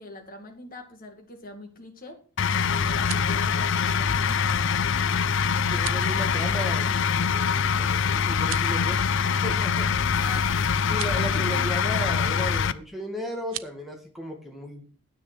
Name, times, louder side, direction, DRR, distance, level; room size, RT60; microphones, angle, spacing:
voice 1, 0.0-2.2 2.6-5.1 10.2-10.5 11.1-11.7, left 2 dB, 40° left, 3 dB, 2.3 m, -42 dB
sound 1, 2.4-12.7, left 6 dB, 60° left, 0.5 m, -24 dB
sound 2, 2.8-3.4 5.7-6.1 8.3-8.8 10.8-11.2 13.4-13.7, right 14 dB, 65° right, 0.5 m, -38 dB
voice 2, 5.7-7.0 7.3-9.1 9.4-9.9 10.9-14.8, equal, ahead, 2 dB, 1.9 m, -35 dB
sound 3, 6.9-12.7, right 5 dB, 35° right, 3.2 m, -54 dB
9.7 x 8.0 x 6.2 m, 0.40 s
head